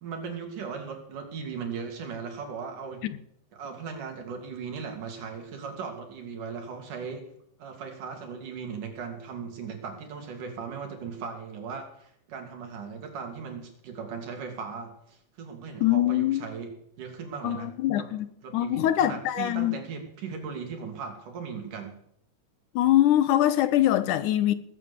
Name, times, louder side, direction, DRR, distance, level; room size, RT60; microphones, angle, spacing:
voice 1, 0.0-3.0 3.5-7.3 7.6-16.7 17.0-17.7 18.0-18.1 18.4-22.0, right 6 dB, 85° right, 4.2 m, -38 dB
voice 2, 15.8-16.4 17.4-18.3 18.5-19.8 22.8-24.5, left 13 dB, 85° left, 2.5 m, -23 dB
19.0 x 9.0 x 7.2 m
omnidirectional pair, 3.6 m